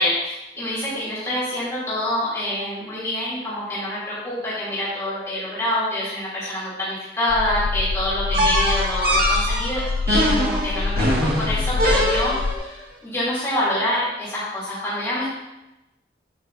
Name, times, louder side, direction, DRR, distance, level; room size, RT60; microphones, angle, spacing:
voice 1, 0.0-15.3, left 1 dB, 20° left, -12 dB, 3.1 m, -26 dB
sound 1, 7.3-12.6, left 3 dB, 80° left, 0.4 m, -26 dB
sound 2, 8.3-12.6, equal, 55° right, 2.1 m, -22 dB
8.7 x 8.7 x 2.8 m, 0.97 s
head